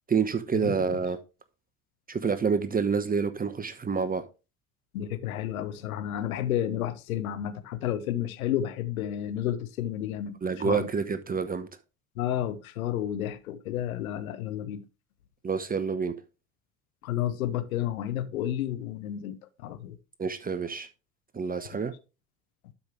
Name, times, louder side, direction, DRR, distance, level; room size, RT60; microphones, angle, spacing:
voice 1, 0.1-1.2 2.1-4.2 10.4-11.7 15.4-16.1 20.2-20.9 21.3-21.9, right 5 dB, 20° right, 1.0 m, -28 dB
voice 2, 4.9-10.4 10.6-10.9 12.2-14.8 17.0-19.4 19.6-20.0, left 11 dB, 75° left, 0.8 m, -31 dB
12.0 x 5.2 x 3.4 m
figure-of-eight pair, 65°, 43 cm